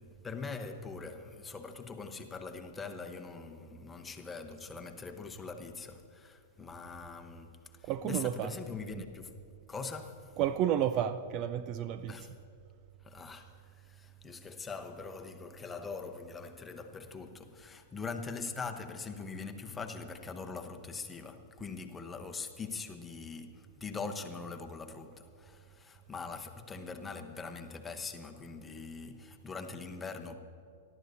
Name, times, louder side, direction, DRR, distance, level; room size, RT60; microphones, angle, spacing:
voice 1, 0.0-9.4 9.7-10.4 12.1-12.3 13.0-30.4, left 4 dB, 15° left, 1.0 m, -42 dB
voice 2, 7.8-8.5 9.0-9.1 10.4-12.1, right 10 dB, 40° right, 0.4 m, -31 dB
29.0 x 12.0 x 2.8 m
hypercardioid pair, 110°, 0 cm